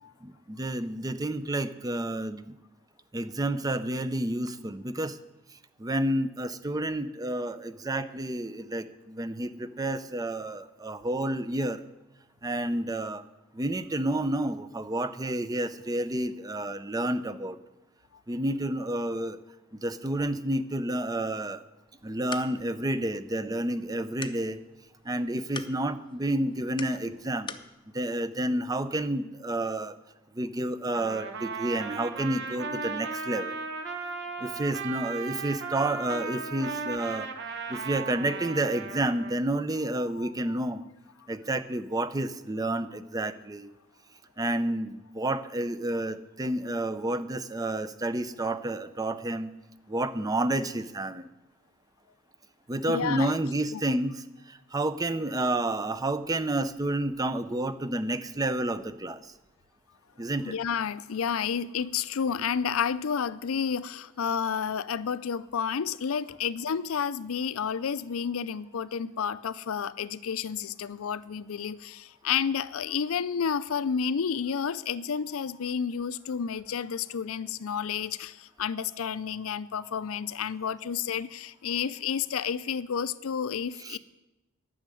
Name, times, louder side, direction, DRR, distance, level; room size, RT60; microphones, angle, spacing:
voice 1, 0.2-2.6 3.1-5.2 5.8-11.8 12.4-13.2 13.5-17.6 18.3-19.4 19.8-21.6 22.0-24.6 25.0-27.5 27.9-30.0 30.3-33.6 34.4-37.3 37.7-40.8 41.3-43.7 44.4-49.5 49.9-51.3 52.7-59.3 60.2-60.5 83.8-84.0, right 1 dB, 20° right, 13 dB, 0.5 m, -30 dB
sound 1, 21.9-27.7, left 5 dB, 25° left, 0.6 m, -45 dB
Trumpet, 30.9-39.4, right 4 dB, 55° right, 1.2 m, -36 dB
voice 2, 40.0-40.3 52.9-53.3 53.7-53.8 60.4-84.0, left 7 dB, 90° left, 17 dB, 0.5 m, -31 dB
10.5 x 6.4 x 9.2 m, 1.0 s
head